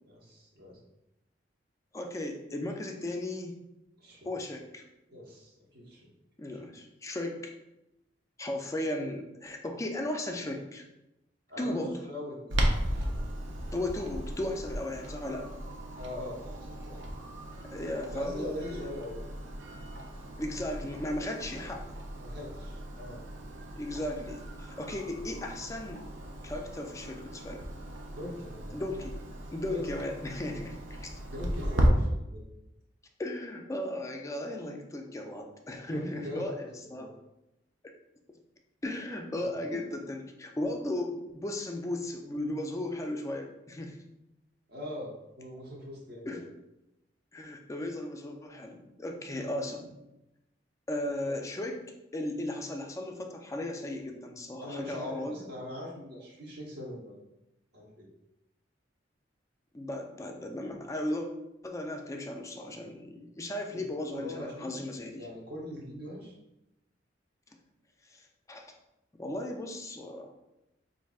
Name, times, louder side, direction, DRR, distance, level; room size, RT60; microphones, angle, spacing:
voice 1, 0.1-0.8 4.0-4.3 5.1-6.1 6.5-6.7 11.5-12.6 13.0-13.3 16.0-17.0 18.1-19.2 22.2-23.2 28.1-28.7 29.7-29.8 31.2-32.4 35.9-37.1 39.7-39.8 44.7-46.5 49.4-49.6 51.0-51.3 54.6-57.2 57.7-58.1 63.7-64.7 65.2-66.3, left 1 dB, 60° right, -3 dB, 1.0 m, -42 dB
voice 2, 1.9-3.6 4.2-4.8 6.4-7.5 8.4-10.8 11.6-12.0 13.7-15.5 17.7-18.9 20.4-21.9 23.7-26.0 26.4-27.7 28.7-29.2 29.5-31.2 33.2-37.2 38.8-44.0 46.3-46.5 47.3-49.9 50.9-51.8 52.1-55.5 59.7-61.3 61.6-65.3 68.1-68.7 69.2-70.3, left 1 dB, 15° left, 3 dB, 0.4 m, -36 dB
Clock, 12.5-31.9, right 1 dB, 85° right, 0.6 m, -36 dB
4.6 x 2.6 x 2.3 m, 0.90 s
head